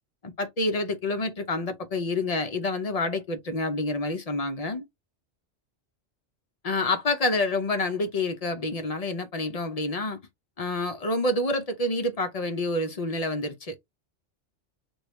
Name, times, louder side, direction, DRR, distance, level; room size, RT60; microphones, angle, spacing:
voice 1, 0.2-4.9 6.6-10.2 10.6-13.7, left 2 dB, 50° left, 0.4 m, -28 dB
3.1 x 2.3 x 3.0 m
omnidirectional pair, 1.2 m